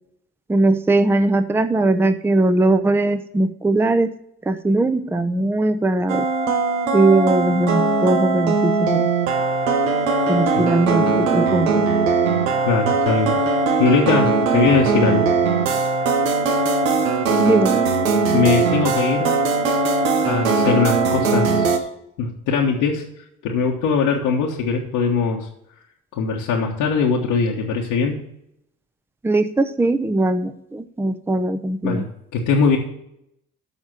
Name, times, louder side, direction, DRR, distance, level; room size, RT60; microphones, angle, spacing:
voice 1, 0.5-4.1 4.5-6.3 6.9-9.1 10.3-11.8 17.4-17.8 29.2-32.0, right 2 dB, 5° right, 11 dB, 0.6 m, -19 dB
sound 1, 6.1-21.8, right 4 dB, 90° right, 1.0 m, -20 dB
voice 2, 12.6-15.3 18.3-19.4 20.3-21.8 22.2-23.0 23.4-25.5 26.1-28.2 31.8-32.8, left 5 dB, 70° left, -3 dB, 1.4 m, -21 dB
7.1 x 5.6 x 7.5 m, 0.76 s
hypercardioid pair, 55°, 39 cm